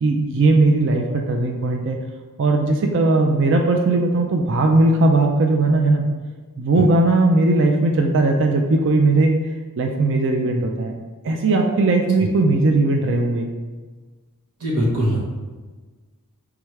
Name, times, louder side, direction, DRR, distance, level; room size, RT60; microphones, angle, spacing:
voice 1, 0.0-2.0 2.4-6.0 6.6-9.4 9.8-10.9 11.2-13.5, right 2 dB, 55° right, 2 dB, 0.4 m, -18 dB
voice 2, 14.6-15.2, equal, 90° right, -6 dB, 1.3 m, -21 dB
3.6 x 3.2 x 4.7 m, 1.3 s
head